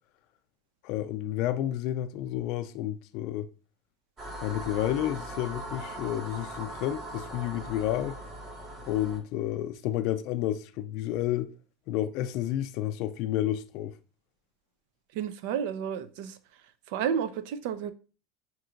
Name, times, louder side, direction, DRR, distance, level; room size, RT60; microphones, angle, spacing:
voice 1, 0.8-3.5 4.4-8.2 8.8-11.5 11.9-14.0, left 12 dB, 65° left, 0.3 m, -30 dB
sound 1, 4.2-9.2, right 1 dB, 40° right, 1.6 m, -40 dB
voice 2, 15.1-16.4 16.9-17.9, right 8 dB, 80° right, 0.4 m, -31 dB
5.6 x 2.9 x 2.5 m
supercardioid pair, 125°, 0 cm